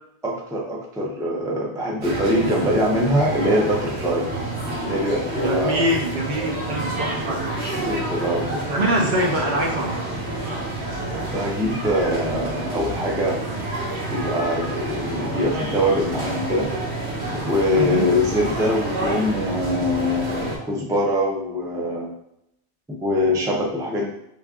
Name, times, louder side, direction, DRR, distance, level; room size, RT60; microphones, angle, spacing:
voice 1, 0.2-4.2 4.8-5.9 7.8-8.6 11.3-13.4 14.1-16.7 17.3-22.1 23.0-24.1, left 1 dB, 5° right, -2 dB, 0.4 m, -23 dB
sound 1, 2.0-20.6, right 2 dB, 80° right, 1.1 m, -28 dB
voice 2, 5.4-7.4 8.6-10.0 17.7-18.1, right 1 dB, 55° right, 1 dB, 0.6 m, -24 dB
3.3 x 2.4 x 3.5 m, 0.80 s
omnidirectional pair, 1.1 m